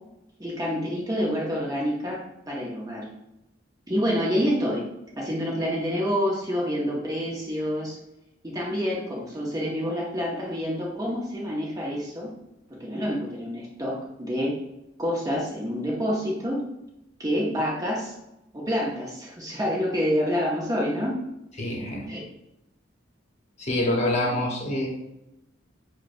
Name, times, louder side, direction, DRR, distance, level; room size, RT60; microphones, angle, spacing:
voice 1, 0.4-2.2 2.5-3.1 3.9-4.9 5.2-8.0 8.4-12.3 12.7-14.5 15.0-16.6 17.2-18.1 18.5-21.2 22.1-22.2, equal, 20° right, -4 dB, 0.6 m, -27 dB
voice 2, 21.6-22.1 23.6-24.9, left 1 dB, 35° left, -1 dB, 0.8 m, -26 dB
6.1 x 2.1 x 2.5 m, 0.88 s
head